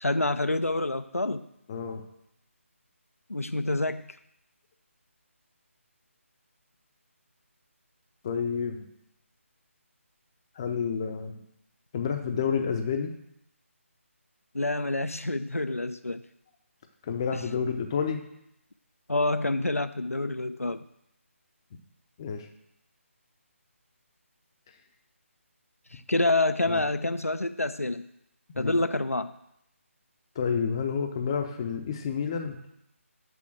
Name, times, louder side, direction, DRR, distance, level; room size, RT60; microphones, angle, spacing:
voice 1, 0.0-1.4 3.3-4.2 14.5-16.2 17.3-17.4 19.1-20.8 25.9-28.1 28.6-29.3, left 2 dB, 90° left, 11 dB, 0.4 m, -27 dB
voice 2, 1.7-2.0 8.2-8.9 10.6-11.4 11.9-13.1 17.0-18.2 22.2-22.5 26.7-26.8 28.5-28.7 30.4-32.6, left 6 dB, 20° left, 6 dB, 0.5 m, -29 dB
6.2 x 5.6 x 6.0 m, 0.78 s
figure-of-eight pair, 150°, 8 cm